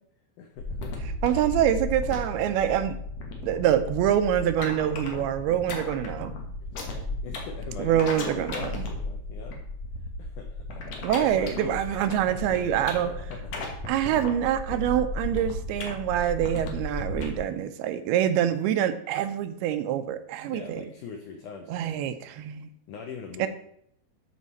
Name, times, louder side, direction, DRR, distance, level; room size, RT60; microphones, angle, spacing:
voice 1, 0.4-1.0 6.6-9.6 10.2-11.9 12.3-13.7 20.4-22.2 22.9-23.5, left 5 dB, 85° left, 4 dB, 1.8 m, -42 dB
sound 1, 0.6-17.3, left 2 dB, 60° left, 1.8 m, -34 dB
voice 2, 1.2-3.0 3.4-6.4 7.8-8.8 11.0-13.1 13.9-20.8 21.7-22.7 23.4-23.5, right 10 dB, 85° right, 10 dB, 2.4 m, -25 dB
13.0 x 4.7 x 4.2 m, 0.69 s
omnidirectional pair, 4.6 m